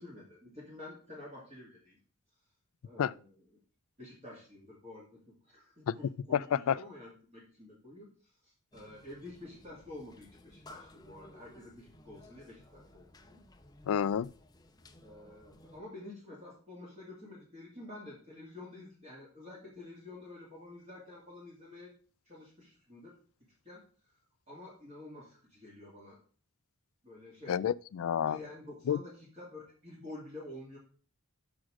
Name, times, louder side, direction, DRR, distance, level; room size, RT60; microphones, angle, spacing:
voice 1, 0.0-2.0 2.8-3.4 4.0-8.1 8.4-13.4 15.0-21.9 22.3-23.2 23.6-23.8 24.5-26.2 27.0-27.6 28.2-30.8, left 2 dB, 30° right, 2.4 m, -49 dB
voice 2, 6.3-6.8 13.9-14.3 27.5-28.4 28.9-29.0, left 8 dB, 70° left, 0.3 m, -29 dB
sound 1, 8.7-15.8, left 1 dB, 15° left, 0.6 m, -57 dB
6.2 x 6.0 x 6.4 m
head